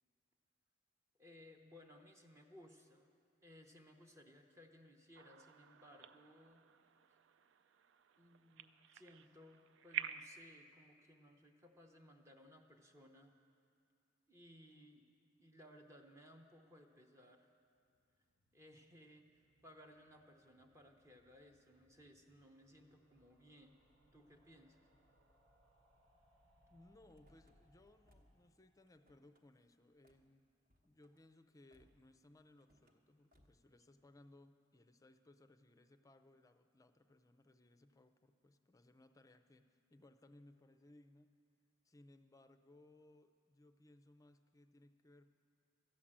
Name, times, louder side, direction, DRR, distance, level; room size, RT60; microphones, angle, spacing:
voice 1, 1.2-3.1 3.4-6.6 7.1-7.2 8.2-13.3 14.3-15.1 15.4-17.5 18.5-23.8 24.1-24.8, left 1 dB, 15° right, 2 dB, 0.7 m, -62 dB
sound 1, 5.1-10.4, right 9 dB, 65° right, 0.4 m, -49 dB
sound 2, 17.7-30.6 30.9-31.0 31.2-31.3 31.5-31.6, equal, 85° right, 1.9 m, -75 dB
voice 2, 26.7-30.5 30.8-41.3 41.8-45.3, left 1 dB, 15° left, 8 dB, 0.5 m, -65 dB
Car / Slam, 27.1-27.6 28.0-28.5 28.8-29.4 30.0-30.3 30.7-31.2 31.7-32.1 32.6-33.0 33.3-33.7, equal, 45° right, 1.1 m, -73 dB
13.0 x 7.3 x 8.7 m, 2.3 s
head